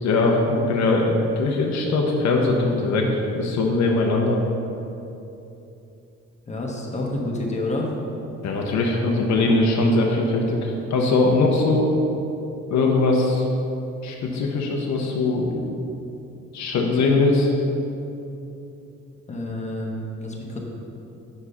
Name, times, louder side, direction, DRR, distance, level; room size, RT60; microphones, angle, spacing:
voice 1, 0.0-4.4 8.4-11.9 12.7-13.4 14.0-15.6 16.5-17.5, left 2 dB, 65° left, 0 dB, 0.8 m, -21 dB
voice 2, 6.5-7.9 19.3-20.6, left 1 dB, 25° left, -1 dB, 1.2 m, -28 dB
5.4 x 4.8 x 5.6 m, 2.9 s
cardioid pair, 90°, 30 cm